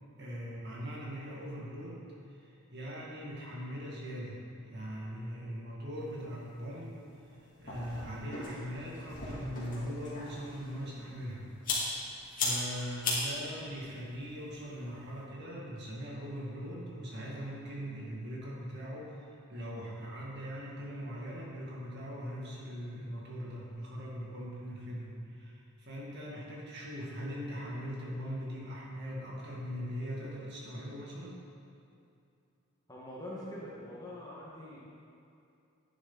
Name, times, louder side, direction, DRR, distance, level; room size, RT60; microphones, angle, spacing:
voice 1, 0.2-2.0 2.3-7.0 7.6-11.4 12.2-31.4, equal, 50° right, -5 dB, 2.3 m, -41 dB
sound 1, 6.0-15.2, left 2 dB, 40° left, 2.4 m, -39 dB
voice 2, 32.9-34.8, left 1 dB, 15° left, -6 dB, 1.6 m, -44 dB
11.5 x 9.6 x 4.0 m, 2.6 s
head